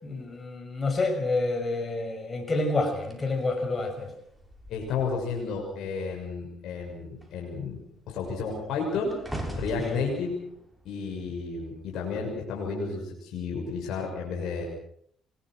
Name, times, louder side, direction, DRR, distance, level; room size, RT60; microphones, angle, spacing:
voice 1, 0.0-4.1 9.8-10.0, left 2 dB, 30° left, 4 dB, 6.5 m, -28 dB
sound 1, 3.0-5.7 6.0-6.4 6.7-12.1 12.8-13.1, right 1 dB, ahead, 7.1 m, -42 dB
voice 2, 4.7-7.8 8.1-9.2 9.5-10.4 10.8-14.6, left 5 dB, 75° left, 0 dB, 6.6 m, -32 dB
25.5 x 22.0 x 6.4 m, 0.69 s
cardioid pair, 90°, 0 cm